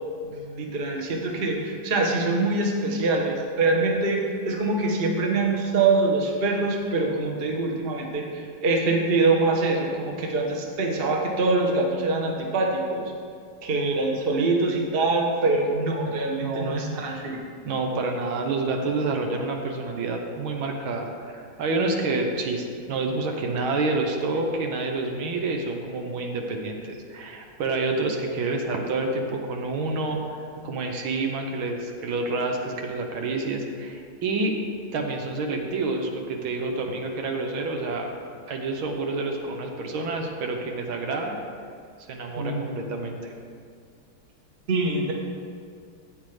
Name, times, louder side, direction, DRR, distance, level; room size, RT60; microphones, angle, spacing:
voice 1, 0.3-4.2 4.4-13.1 13.6-17.4 42.4-42.8 44.7-45.1, right 3 dB, 35° right, 0 dB, 1.0 m, -24 dB
voice 2, 16.4-16.8 17.6-34.5 34.9-38.1 38.5-41.4 42.1-43.3, right 3 dB, 80° right, 2 dB, 1.8 m, -28 dB
13.0 x 8.4 x 3.3 m, 2.2 s
omnidirectional pair, 2.3 m